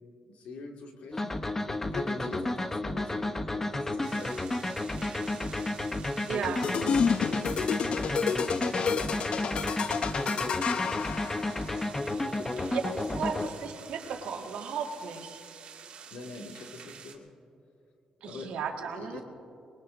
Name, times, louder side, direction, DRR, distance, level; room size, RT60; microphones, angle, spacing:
voice 1, 0.3-4.5 6.6-11.2 12.1-13.5 16.1-17.3 18.2-18.6 18.9-19.2, left 2 dB, 85° left, 1 dB, 2.1 m, -43 dB
sound 1, 1.1-13.5, left 2 dB, 20° left, 0.8 m, -32 dB
sound 2, 4.0-17.2, right 7 dB, 65° right, 2.2 m, -49 dB
voice 2, 6.3-6.6 12.7-15.4 18.2-19.2, right 6 dB, 85° right, 2 dB, 1.8 m, -35 dB
sound 3, 6.6-11.8, left 6 dB, 55° left, 0.4 m, -30 dB
25.0 x 21.0 x 2.6 m, 2.7 s
cardioid pair, 105°, 2 cm